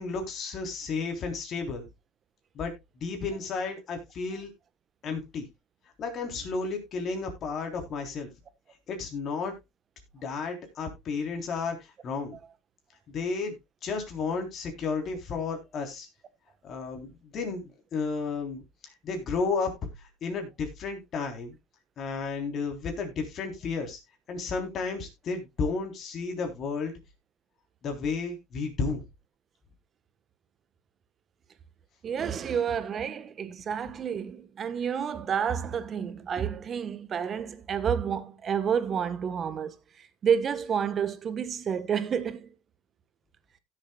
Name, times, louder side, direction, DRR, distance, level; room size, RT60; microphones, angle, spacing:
voice 1, 0.0-1.8 2.6-4.5 5.0-5.5 6.0-8.3 8.9-9.5 10.1-11.8 12.0-12.4 13.1-13.6 13.8-16.1 16.6-18.6 19.0-19.7 20.2-21.6 22.0-24.0 24.3-26.9 27.8-29.1, left 4 dB, 45° left, 3.6 m, -32 dB
voice 2, 32.0-42.5, right 7 dB, 35° right, 1.2 m, -30 dB
16.5 x 7.4 x 2.3 m
supercardioid pair, 95°, 0 cm